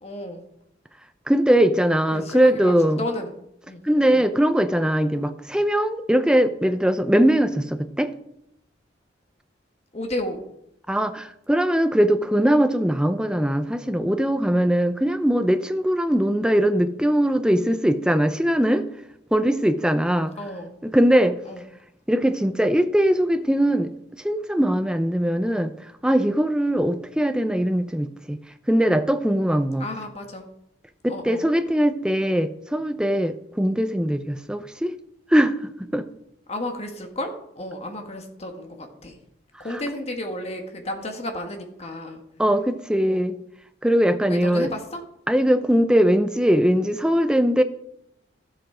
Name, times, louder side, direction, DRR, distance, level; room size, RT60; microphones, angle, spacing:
voice 1, 0.0-0.4 2.1-3.3 3.6-3.8 4.1-4.2 9.9-10.4 20.4-20.7 21.4-21.6 29.8-30.5 31.1-31.4 36.5-39.2 39.6-42.2 43.0-43.2 44.3-45.0, left 1 dB, 35° left, 4 dB, 1.7 m, -32 dB
voice 2, 1.3-3.0 3.8-8.1 10.9-18.9 19.3-20.3 20.8-21.4 22.1-23.9 24.2-25.7 26.0-28.4 28.7-29.9 31.0-34.9 35.3-36.1 42.4-43.4 43.8-44.7 45.3-47.6, equal, 5° right, 9 dB, 0.6 m, -21 dB
12.5 x 7.8 x 5.0 m, 0.78 s
head